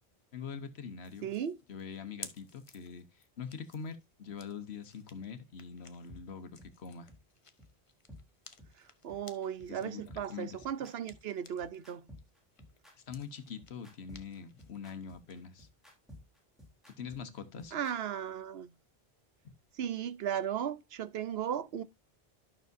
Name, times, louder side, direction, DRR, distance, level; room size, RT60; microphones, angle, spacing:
voice 1, 0.3-1.3 1.7-7.1 9.7-10.0 10.3-10.6 13.0-15.7 17.0-17.8, left 6 dB, 85° left, 1.3 m, -44 dB
sound 1, 1.0-11.8 12.2-15.4, left 4 dB, 35° left, 0.8 m, -55 dB
voice 2, 1.2-1.5 9.0-12.0 17.7-18.7 19.8-21.8, right 9 dB, 75° right, 0.9 m, -36 dB
sound 2, 6.1-6.2 6.6-6.7 7.1-7.2 7.6-7.7 8.1-8.2 8.6-8.7 9.1-9.2 9.6-9.7 10.1-17.9, equal, ahead, 3.3 m, -53 dB
12.0 x 6.3 x 2.6 m
omnidirectional pair, 1.1 m